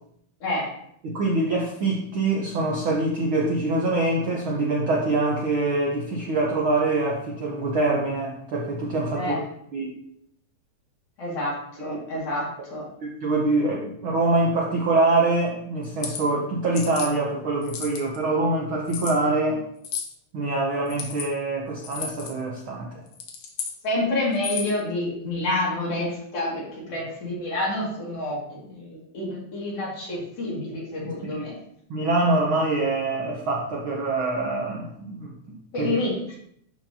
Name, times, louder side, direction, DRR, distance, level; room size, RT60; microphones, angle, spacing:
voice 1, 1.0-9.3 9.7-9.9 11.8-12.0 13.0-19.7 20.3-23.0 31.4-31.5 31.9-35.9, right 2 dB, 65° right, -2 dB, 1.3 m, -24 dB
voice 2, 11.2-12.8 23.8-31.5 35.7-36.4, left 1 dB, 55° left, -5 dB, 3.2 m, -28 dB
sound 1, 15.8-16.2 16.8-17.1 17.6-18.2 18.9-19.2 19.8-20.1 20.9-21.3 21.8-22.3 23.1-23.8 24.3-24.8, left 7 dB, 85° left, 2.5 m, -33 dB
11.0 x 4.6 x 2.8 m, 0.70 s
omnidirectional pair, 3.4 m